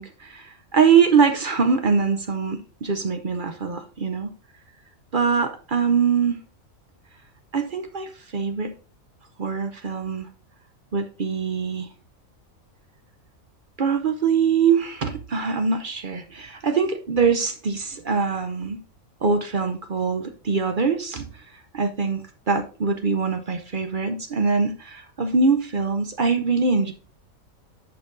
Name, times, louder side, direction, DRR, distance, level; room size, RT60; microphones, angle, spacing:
voice 1, 0.0-4.3 5.1-6.4 7.5-8.7 9.4-10.3 10.9-11.9 13.8-18.8 19.2-21.3 21.7-26.9, right 5 dB, 45° right, 7 dB, 0.7 m, -23 dB
10.5 x 5.6 x 2.6 m, 0.37 s
omnidirectional pair, 1.4 m